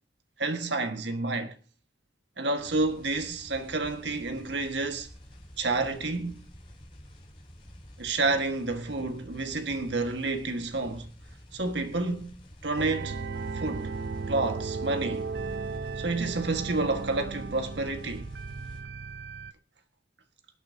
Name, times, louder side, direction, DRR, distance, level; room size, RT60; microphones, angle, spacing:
voice 1, 0.4-1.5 2.4-5.1 5.6-6.5 8.0-11.1 11.5-12.3 12.6-13.2 13.5-13.9 14.3-15.3 16.0-18.3, right 3 dB, 75° right, 1.5 m, -29 dB
sound 1, 2.6-18.8, equal, 30° left, 4.5 m, -50 dB
sound 2, 12.8-19.5, right 4 dB, 60° right, 0.5 m, -35 dB
25.5 x 8.6 x 2.8 m
head